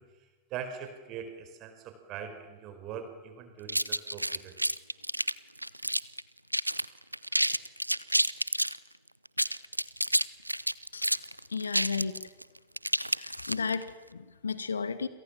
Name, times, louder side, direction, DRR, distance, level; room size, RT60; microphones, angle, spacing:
voice 1, 0.0-4.7, right 7 dB, 40° right, 8 dB, 5.1 m, -42 dB
sound 1, 3.7-6.2 6.5-6.9 7.1-8.8 9.3-13.8, right 1 dB, 90° right, 0.8 m, -29 dB
voice 2, 11.5-12.2 13.1-15.1, left 5 dB, 75° left, 14 dB, 1.5 m, -33 dB
29.5 x 27.0 x 7.4 m, 1.3 s
figure-of-eight pair, 90°, 0 cm